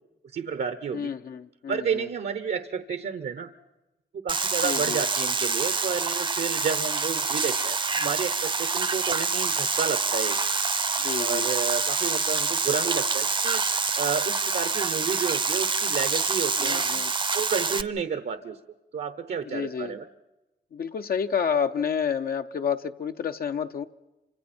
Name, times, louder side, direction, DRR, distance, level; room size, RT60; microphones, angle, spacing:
voice 1, 0.3-1.1 1.7-3.5 4.2-10.4 11.2-16.9 17.3-18.6 18.9-20.1, right 6 dB, 70° right, 9 dB, 1.0 m, -31 dB
voice 2, 0.9-2.1 4.6-5.0 11.0-11.5 16.6-17.1 19.4-19.9 20.7-23.9, left 7 dB, 60° left, 7 dB, 0.6 m, -29 dB
sound 1, 4.3-17.8, right 4 dB, 30° right, 0.7 m, -26 dB
28.0 x 25.5 x 4.4 m, 1.0 s
wide cardioid pair, 155°, 17 cm